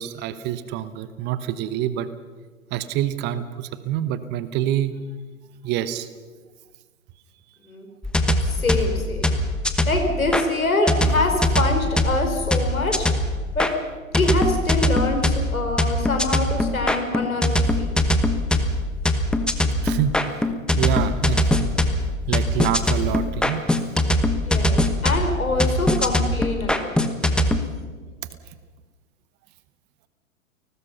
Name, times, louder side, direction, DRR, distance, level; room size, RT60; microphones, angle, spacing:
voice 1, 0.0-2.1 2.7-5.0 5.6-6.1 19.8-20.1 20.7-21.7 22.3-23.6, right 11 dB, 25° right, 14 dB, 1.0 m, -26 dB
sound 1, 8.0-10.4 10.9-13.7 14.1-27.6, left 1 dB, ahead, 1.2 m, -22 dB
voice 2, 8.4-9.4 9.8-12.9 13.6-13.7 14.1-17.9 24.4-27.0 27.4-27.5, left 2 dB, 80° left, 4 dB, 5.1 m, -25 dB
30.0 x 19.5 x 5.6 m, 1.4 s
figure-of-eight pair, 110°, 41 cm